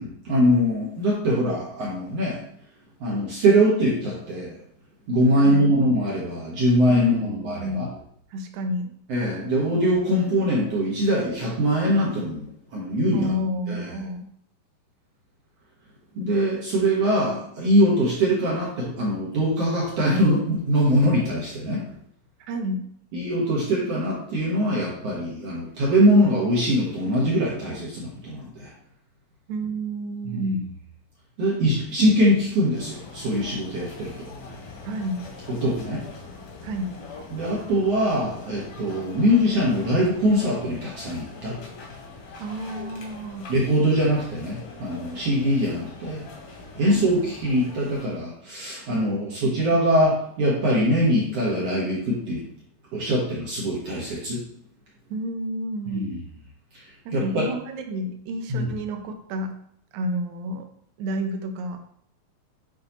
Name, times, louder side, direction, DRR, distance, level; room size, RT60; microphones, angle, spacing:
voice 1, 0.0-2.4 3.0-4.6 5.1-7.9 9.1-13.3 13.7-13.9 16.2-21.8 23.1-28.7 30.2-30.4 31.4-34.3 35.5-36.0 37.3-41.6 43.5-46.2 46.8-52.4 52.9-54.4 55.9-56.2 57.1-57.5 58.5-58.7, equal, 60° right, -5 dB, 1.9 m, -22 dB
voice 2, 5.4-5.7 6.9-7.9 8.3-8.9 13.1-14.3 22.4-22.9 29.5-30.7 34.9-35.2 36.6-37.0 42.4-43.5 46.8-47.2 49.0-49.4 55.1-56.1 57.1-59.6 59.9-60.7 61.0-61.8, right 1 dB, 80° right, 5 dB, 1.7 m, -30 dB
sound 1, 32.7-48.1, left 3 dB, 80° left, 3.7 m, -42 dB
8.7 x 4.1 x 2.9 m, 0.66 s
omnidirectional pair, 4.1 m